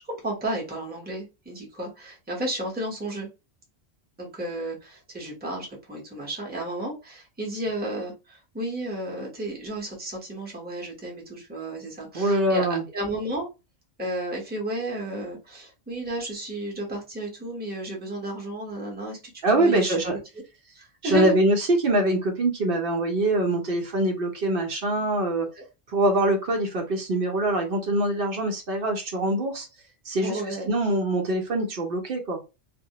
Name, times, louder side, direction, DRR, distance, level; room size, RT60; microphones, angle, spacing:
voice 1, 0.1-3.3 4.2-12.6 12.9-13.5 14.0-20.0 20.7-21.4 25.6-25.7 30.2-30.7, right 2 dB, 10° right, -2 dB, 0.6 m, -32 dB
voice 2, 12.1-12.8 19.4-20.2 21.0-25.5 25.9-29.7 30.0-32.4, right 1 dB, 60° right, 3 dB, 0.7 m, -24 dB
2.2 x 2.0 x 2.7 m, 0.27 s
omnidirectional pair, 1.2 m